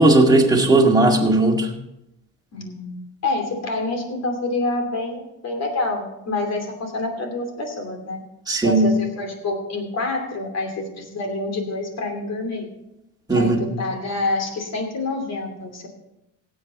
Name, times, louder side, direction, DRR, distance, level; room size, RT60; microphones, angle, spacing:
voice 1, 0.0-1.7 8.5-8.9 13.3-13.7, right 2 dB, 10° right, 0 dB, 2.0 m, -16 dB
voice 2, 2.5-3.0 3.2-8.2 8.6-12.7 13.3-15.9, left 2 dB, 45° left, 4 dB, 2.8 m, -27 dB
16.5 x 8.1 x 4.2 m, 0.87 s
cardioid pair, 115°, 35 cm